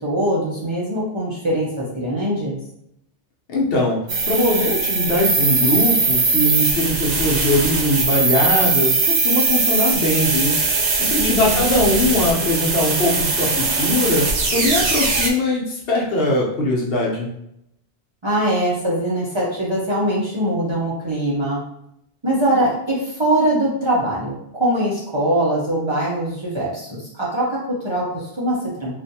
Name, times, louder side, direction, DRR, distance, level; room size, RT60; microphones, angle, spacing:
voice 1, 0.0-2.6 11.2-11.9 18.2-21.6 22.2-29.0, right 1 dB, 30° right, -7 dB, 0.6 m, -22 dB
voice 2, 3.5-4.0 4.3-10.6 11.0-14.2 14.5-17.3, left 1 dB, 60° left, -3 dB, 0.9 m, -21 dB
sound 1, 4.1-15.3, right 4 dB, 80° right, 1.0 m, -20 dB
3.2 x 2.5 x 2.7 m, 0.77 s
omnidirectional pair, 1.2 m